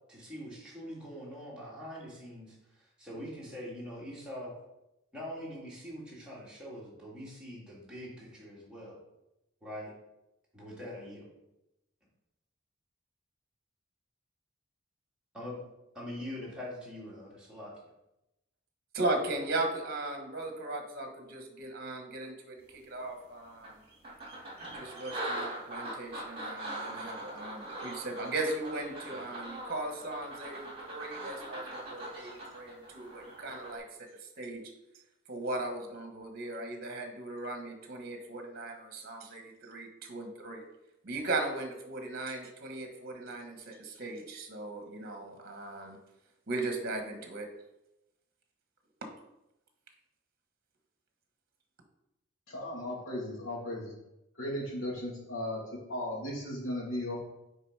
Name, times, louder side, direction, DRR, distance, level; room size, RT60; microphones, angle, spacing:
voice 1, 0.1-4.5 5.1-9.0 9.6-9.9 10.5-11.3 15.3-15.6 15.9-17.7, equal, 5° right, -6 dB, 2.5 m, -43 dB
voice 2, 18.9-23.8 24.7-34.1 34.4-34.6 35.3-40.6 41.0-46.0 46.5-47.5, right 2 dB, 50° right, 4 dB, 1.2 m, -37 dB
sound 1, 23.0-23.1 23.6-33.8, right 1 dB, 30° right, 2.3 m, -41 dB
voice 3, 52.5-53.9 54.4-57.2, left 1 dB, 85° left, -4 dB, 2.5 m, -36 dB
6.8 x 4.9 x 4.7 m, 0.90 s
head